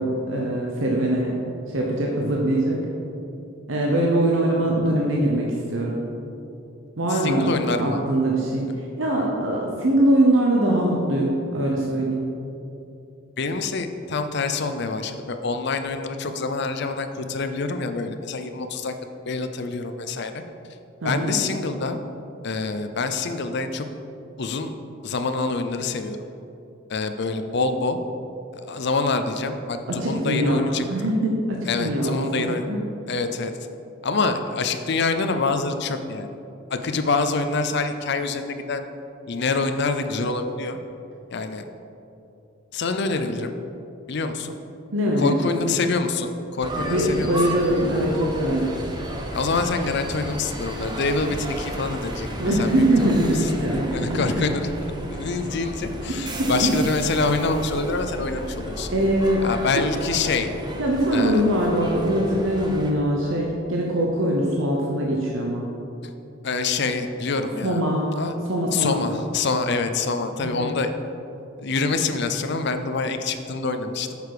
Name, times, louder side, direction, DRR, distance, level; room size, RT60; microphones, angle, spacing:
voice 1, 0.0-1.3 1.7-2.8 3.7-6.0 7.0-7.5 7.8-12.3 21.0-21.4 29.9-32.8 44.9-45.7 46.8-48.7 52.4-54.5 56.4-56.7 58.9-59.5 60.8-65.6 67.6-68.1 68.5-69.0 70.4-70.7, right 1 dB, 70° right, -2 dB, 0.9 m, -22 dB
voice 2, 7.1-8.0 13.4-18.9 19.3-20.4 21.0-22.0 22.4-23.8 24.4-24.7 25.0-26.2 26.9-28.0 28.6-31.1 31.7-32.7 33.1-33.5 34.0-36.3 36.7-38.8 39.3-40.8 41.3-41.6 42.7-43.5 44.1-44.5 45.2-47.3 49.3-53.5 53.9-54.7 55.1-58.9 59.4-60.5 61.1-61.4 66.4-67.8 68.2-68.3 68.7-70.9 71.6-74.1, left 3 dB, 55° left, 8 dB, 0.6 m, -26 dB
sound 1, 46.6-62.9, right 1 dB, 20° right, 0.8 m, -33 dB
8.1 x 6.8 x 4.9 m, 2.8 s
head